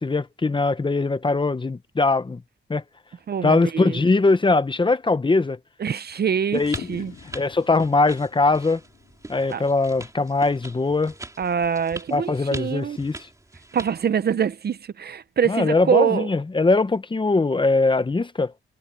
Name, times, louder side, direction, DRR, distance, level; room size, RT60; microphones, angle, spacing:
voice 1, 0.0-2.4 2.7-2.8 3.4-5.6 6.5-7.0 7.3-8.8 9.3-11.1 12.1-13.2 15.5-18.5, left 3 dB, 25° left, 0.9 m, -21 dB
voice 2, 3.3-4.0 5.8-6.6 6.9-7.1 9.5-9.6 11.4-13.0 13.7-16.3, right 7 dB, 50° right, 0.6 m, -24 dB
sound 1, 6.5-14.0, right 2 dB, 15° right, 3.1 m, -42 dB
Fireworks, 6.7-10.6, left 9 dB, 90° left, 2.2 m, -44 dB
wide cardioid pair, 120°, 21 cm